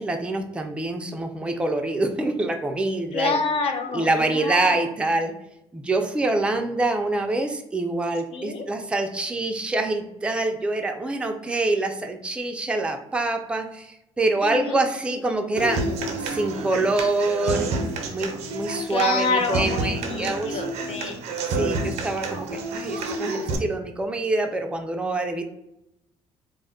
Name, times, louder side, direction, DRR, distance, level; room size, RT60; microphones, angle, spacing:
voice 1, 0.0-3.3 3.9-5.3 5.7-15.9 16.2-17.7 18.1-20.6 21.4-25.4, right 2 dB, 10° right, 4 dB, 0.3 m, -25 dB
voice 2, 3.1-4.8 8.3-8.7 14.4-14.8 18.9-21.2, left 4 dB, 60° left, 5 dB, 0.5 m, -27 dB
Human voice / Acoustic guitar, 15.6-23.6, right 2 dB, 80° right, 0.4 m, -29 dB
2.1 x 2.0 x 3.6 m, 0.82 s
cardioid pair, 100°, 11 cm